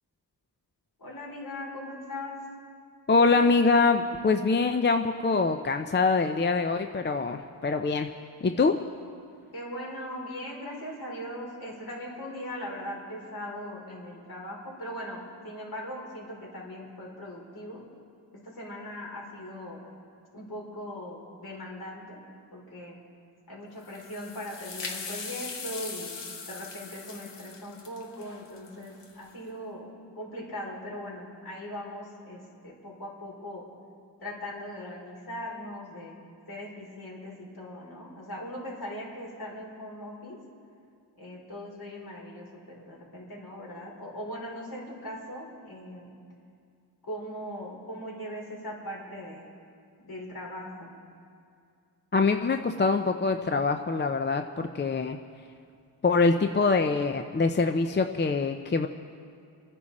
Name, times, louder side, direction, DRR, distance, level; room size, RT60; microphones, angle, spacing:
voice 1, 1.0-2.4 9.5-17.8 18.3-19.9 20.3-22.2 22.5-23.0 23.5-26.1 26.4-33.7 34.2-36.2 36.5-40.4 41.1-46.2 47.0-49.5 50.0-51.0, left 1 dB, 60° left, -3 dB, 4.5 m, -40 dB
voice 2, 3.1-8.1 8.4-8.8 52.1-55.2 56.0-58.9, left 4 dB, 25° left, 6 dB, 0.6 m, -24 dB
sound 1, 23.8-29.3, left 4 dB, 85° left, 1.5 m, -40 dB
28.5 x 10.0 x 4.2 m, 2.4 s
cardioid pair, 90°, 42 cm